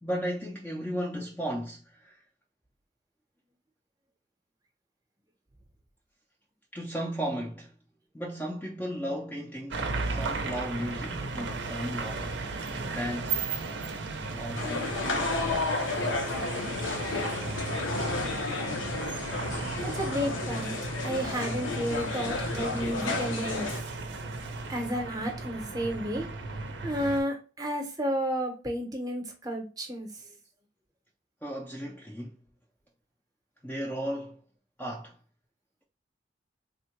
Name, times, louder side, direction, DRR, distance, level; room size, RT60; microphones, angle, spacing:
voice 1, 0.0-2.2 6.7-7.7 8.1-12.4 12.9-13.4 14.4-15.1 31.4-32.4 33.6-34.4 34.8-35.2, equal, 10° left, 0.4 m, -35 dB
sound 1, 9.7-27.2, right 3 dB, 60° right, 0.5 m, -35 dB
sound 2, 14.5-23.8, left 3 dB, 85° left, 0.7 m, -32 dB
voice 2, 19.8-20.8 21.0-23.7 24.7-26.3 26.8-30.1, equal, 20° right, 0.7 m, -32 dB
3.5 x 2.2 x 2.8 m
head